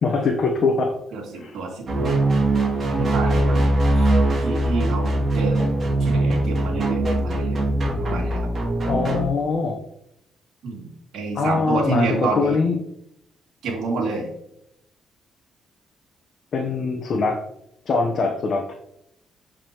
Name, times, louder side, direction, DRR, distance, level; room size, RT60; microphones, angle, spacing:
voice 1, 0.0-1.0 1.4-1.5 8.9-9.8 11.3-12.1 12.4-12.7 16.5-17.4 17.9-18.7, left 4 dB, 55° left, 2 dB, 1.0 m, -22 dB
voice 2, 1.1-2.2 2.8-5.7 6.0-7.6 7.9-8.5 10.6-12.6 13.6-14.3, right 3 dB, 70° right, -2 dB, 2.6 m, -28 dB
sound 1, 1.9-9.3, right 1 dB, 40° right, 2.5 m, -21 dB
8.4 x 5.0 x 3.0 m, 0.77 s
cardioid pair, 90°, 0 cm